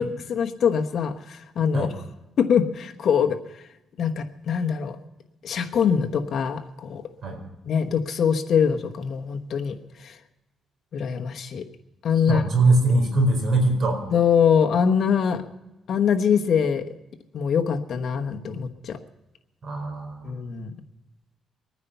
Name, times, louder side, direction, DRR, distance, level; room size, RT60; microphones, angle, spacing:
voice 1, 0.0-1.9 2.4-3.4 4.0-5.0 5.4-7.0 7.7-9.7 10.0-10.1 10.9-11.6 12.0-12.4 14.1-15.4 15.9-16.8 17.3-19.0 20.2-20.7, left 7 dB, 55° left, 5 dB, 1.1 m, -23 dB
voice 2, 12.3-14.0 19.6-20.3, right 2 dB, 50° right, 3 dB, 4.4 m, -22 dB
22.5 x 9.6 x 5.7 m, 0.99 s
cardioid pair, 130°, 0 cm